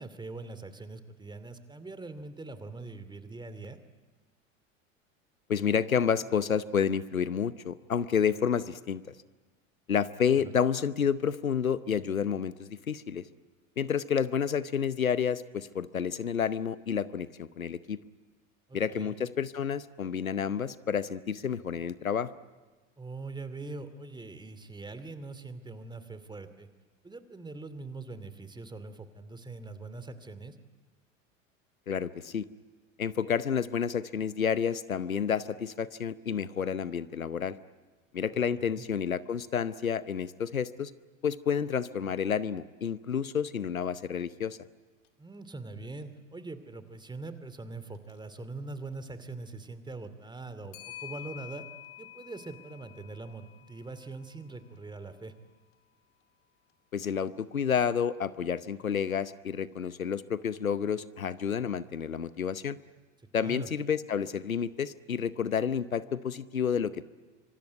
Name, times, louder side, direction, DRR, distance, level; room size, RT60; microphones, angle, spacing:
voice 1, 0.0-3.8 10.3-10.4 18.7-19.1 23.0-26.7 27.0-30.6 38.6-38.8 45.2-51.6 52.0-55.3 63.4-63.7, right 3 dB, 10° right, 11 dB, 2.5 m, -42 dB
voice 2, 5.5-9.0 9.9-13.2 13.8-18.0 18.7-22.3 31.9-32.5 33.0-37.6 38.1-40.9 41.2-44.6 56.9-62.8 63.3-67.0, left 7 dB, 85° left, 17 dB, 0.9 m, -30 dB
Clock, 44.5-44.6 45.0-45.1 47.9-48.2 50.7-55.0, left 13 dB, 60° left, 2.6 m, -48 dB
25.5 x 25.0 x 9.3 m, 1.3 s
figure-of-eight pair, 80°, 40 cm